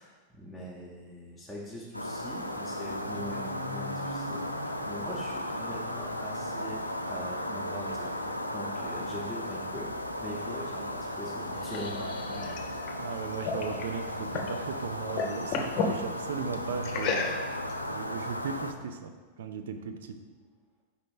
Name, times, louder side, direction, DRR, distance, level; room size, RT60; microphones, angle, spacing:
voice 1, 0.0-9.9 10.2-12.5, equal, 5° left, -7 dB, 0.9 m, -42 dB
sound 1, 1.9-18.7, left 1 dB, 90° left, 0.4 m, -35 dB
voice 2, 10.8-11.2 13.0-17.3 17.9-20.2, right 6 dB, 60° right, 7 dB, 0.5 m, -37 dB
sound 2, 11.2-14.6 14.9-16.0 16.8-17.7, left 5 dB, 40° left, 0.7 m, -33 dB
5.1 x 4.2 x 4.7 m, 1.4 s
figure-of-eight pair, 90°, 0 cm